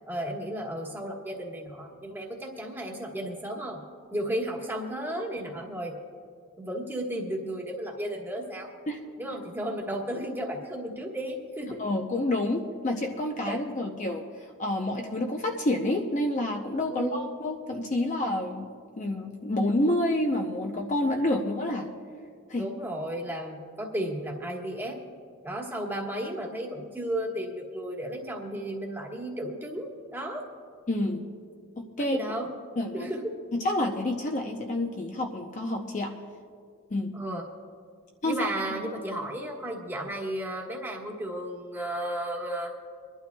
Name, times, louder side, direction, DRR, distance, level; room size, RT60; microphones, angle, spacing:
voice 1, 0.1-3.8 4.1-6.0 6.6-8.7 9.2-11.8 13.4-13.6 16.9-17.3 22.6-25.0 25.4-30.5 32.0-32.5 32.9-33.4 37.1-37.4 38.2-42.7, right 1 dB, 10° right, -1 dB, 1.4 m, -34 dB
voice 2, 11.8-14.2 14.6-18.7 19.0-21.9 22.5-22.7 30.9-31.2 31.8-32.2 32.8-33.1 33.5-36.1 36.9-37.1 38.2-38.5, left 1 dB, 35° left, 2 dB, 0.6 m, -28 dB
25.5 x 11.5 x 2.3 m, 2.3 s
head